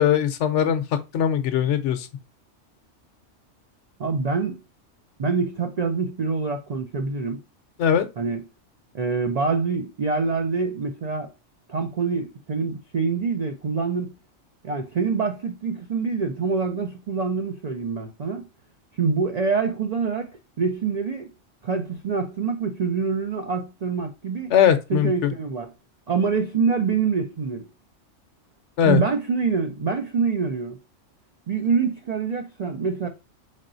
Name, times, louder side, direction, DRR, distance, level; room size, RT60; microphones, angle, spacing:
voice 1, 0.0-2.1 7.8-8.1 24.5-25.3 28.8-29.0, left 9 dB, 70° left, 0.9 m, -20 dB
voice 2, 4.0-4.6 5.2-7.4 8.2-8.4 8.9-11.3 11.7-14.2 14.6-18.5 18.9-20.3 20.6-21.3 21.6-24.5 24.9-25.7 26.1-27.7 28.9-30.8 31.5-33.1, right 5 dB, 65° right, 0.4 m, -25 dB
3.8 x 3.6 x 2.5 m
omnidirectional pair, 1.3 m